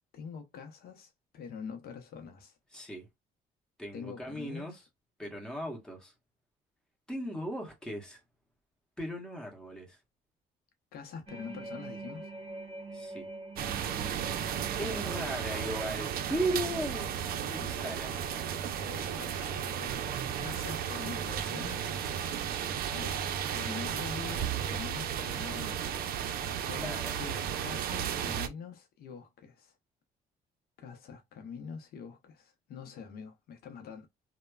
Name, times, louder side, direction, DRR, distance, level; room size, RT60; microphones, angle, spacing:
voice 1, 0.1-2.6 3.9-4.8 10.9-12.3 17.6-18.4 18.6-19.5 19.8-19.9 20.4-22.0 22.3-26.2 26.6-29.8 30.8-34.1, left 6 dB, 65° left, 0.6 m, -45 dB
voice 2, 2.7-3.1 3.8-4.8 5.2-6.1 7.1-8.2 9.0-10.0 12.9-13.3 14.8-18.1 26.8-27.2, right 1 dB, 5° left, 1.2 m, -37 dB
sound 1, 11.3-24.8 25.1-25.4, right 2 dB, 35° right, 0.9 m, -48 dB
sound 2, 13.6-28.5, right 8 dB, 60° right, 0.5 m, -34 dB
3.1 x 2.1 x 2.2 m
cardioid pair, 110°, 17 cm